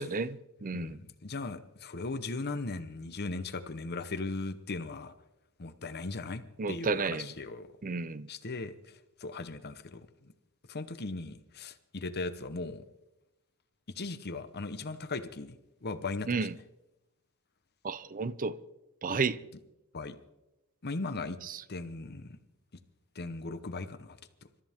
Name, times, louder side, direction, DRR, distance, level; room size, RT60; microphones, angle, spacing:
voice 1, 0.0-1.0 6.6-7.3 7.8-8.3 16.3-16.5 17.8-18.6 19.0-19.4 21.4-21.6, right 4 dB, 40° right, 0.6 m, -32 dB
voice 2, 0.7-5.1 5.6-6.4 6.7-7.7 8.3-10.3 10.7-12.8 13.9-16.3 19.1-19.2 19.9-20.2 20.8-21.4 21.7-22.4 23.1-24.2, left 3 dB, 50° left, 1.0 m, -38 dB
26.5 x 13.5 x 3.6 m
head